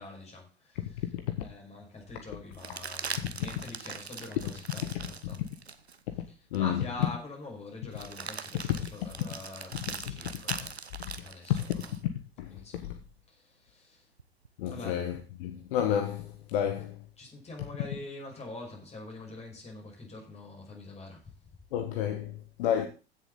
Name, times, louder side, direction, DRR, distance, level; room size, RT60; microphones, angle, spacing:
voice 1, 0.0-5.5 6.3-10.8 11.2-12.0 12.5-12.9 13.3-14.1 14.7-15.0 17.2-21.3, left 2 dB, 20° left, 6.0 m, -45 dB
sound 1, 1.0-1.1 2.5-6.0 6.5-6.6 7.9-12.0 14.2-15.1, right 5 dB, 90° right, 1.0 m, -41 dB
voice 2, 6.5-6.8 11.5-11.6 12.0-12.5 12.8-12.9 14.6-17.0 21.7-22.3 22.6-22.9, left 10 dB, 55° left, 1.4 m, -30 dB
16.0 x 7.2 x 4.0 m
figure-of-eight pair, 90°, 31 cm